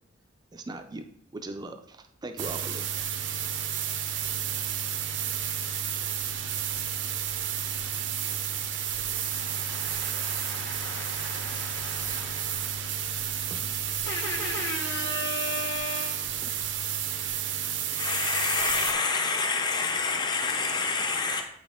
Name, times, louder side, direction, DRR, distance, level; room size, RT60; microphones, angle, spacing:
voice 1, 0.5-1.1 1.3-2.9, right 2 dB, 20° right, 7 dB, 0.4 m, -39 dB
sound 1, 2.4-18.9, right 9 dB, 70° right, 0.6 m, -31 dB
voice 2, 8.9-13.0 14.0-16.3, left 2 dB, 70° left, 1 dB, 1.3 m, -37 dB
voice 3, 17.9-21.4, left 4 dB, 25° left, 3 dB, 0.6 m, -27 dB
8.3 x 4.1 x 3.6 m, 0.72 s
head